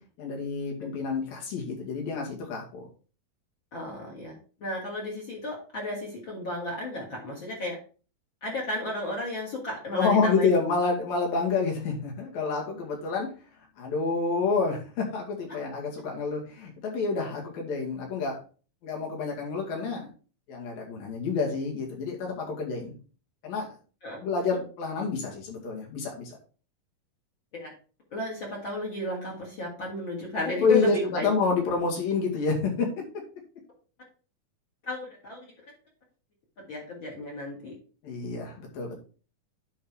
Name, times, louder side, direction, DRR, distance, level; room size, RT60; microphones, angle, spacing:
voice 1, 0.2-2.8 9.9-13.3 13.8-18.4 18.8-20.1 20.5-22.9 23.4-23.7 24.2-26.4 30.6-32.9 38.0-39.0, left 4 dB, 70° left, 0 dB, 3.9 m, -28 dB
voice 2, 3.7-7.8 8.4-10.5 24.0-24.2 27.5-27.7 28.1-31.3 34.8-35.4 36.6-37.7, left 1 dB, 40° left, -2 dB, 2.4 m, -33 dB
10.0 x 3.9 x 4.7 m, 0.37 s
omnidirectional pair, 4.2 m